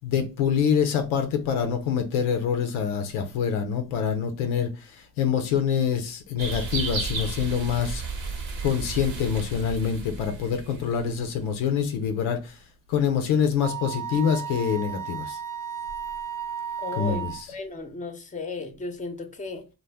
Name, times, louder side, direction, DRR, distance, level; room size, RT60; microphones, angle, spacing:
voice 1, 0.0-4.9 5.2-8.0 8.6-12.5 12.9-15.4 17.0-17.3, left 7 dB, 85° left, 0.6 m, -25 dB
sound 1, 6.4-11.4, right 4 dB, 65° right, 1.0 m, -33 dB
Wind instrument woodwind instrument, 13.6-17.5, right 8 dB, 45° right, 0.5 m, -34 dB
voice 2, 16.8-19.7, left 3 dB, 15° left, 0.6 m, -35 dB
2.2 x 2.1 x 3.3 m
supercardioid pair, 50°, 48 cm